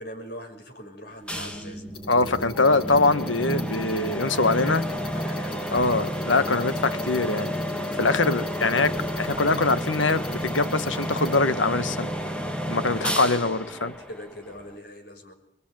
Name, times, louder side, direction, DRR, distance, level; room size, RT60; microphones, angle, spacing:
voice 1, 0.0-1.9 4.2-5.8 13.2-13.5 14.0-15.3, equal, 55° left, 5 dB, 5.8 m, -41 dB
sound 1, 1.3-14.8, equal, 5° left, 2.7 m, -31 dB
sound 2, 1.9-11.4, left 2 dB, 30° left, 5.5 m, -44 dB
voice 2, 2.1-4.8 5.7-7.5 7.9-12.1 12.7-13.9, left 3 dB, 85° left, 12 dB, 1.7 m, -23 dB
27.0 x 22.5 x 9.3 m, 0.74 s
head